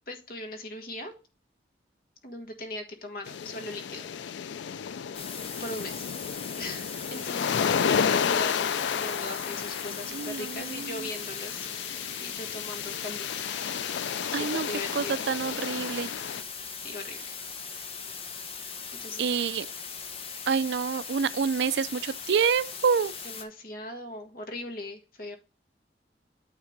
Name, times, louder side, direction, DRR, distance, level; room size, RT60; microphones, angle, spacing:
voice 1, 0.1-1.1 2.2-4.1 4.4-4.8 5.6-6.0 6.6-11.7 12.2-13.5 14.0-15.3 16.8-17.4 19.0-19.3 23.2-25.4, left 1 dB, 50° left, 1.6 m, -39 dB
sound 1, 3.3-16.4, left 7 dB, 85° left, 0.4 m, -32 dB
sound 2, 5.1-23.4, left 6 dB, 30° left, 0.9 m, -39 dB
voice 2, 10.1-11.1 14.3-14.7 14.9-16.1 19.2-19.7 20.5-23.1, right 6 dB, 75° right, 0.4 m, -27 dB
9.1 x 3.6 x 4.7 m
head